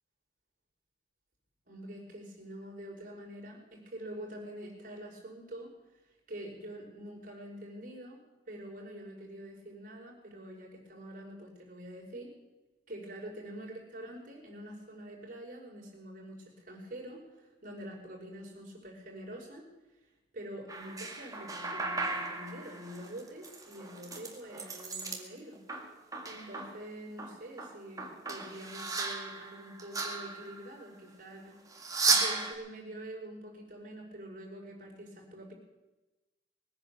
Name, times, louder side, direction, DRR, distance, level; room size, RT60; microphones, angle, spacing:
voice 1, 1.7-5.7 6.3-8.2 8.5-12.3 12.9-19.6 20.3-25.6 26.2-31.6 32.1-35.5, right 1 dB, 50° right, -2 dB, 5.2 m, -46 dB
sound 1, 20.7-25.2 25.5-26.8 27.2-30.8 31.7-32.5, right 4 dB, 20° right, 2.0 m, -35 dB
21.0 x 9.9 x 7.0 m, 1.1 s
head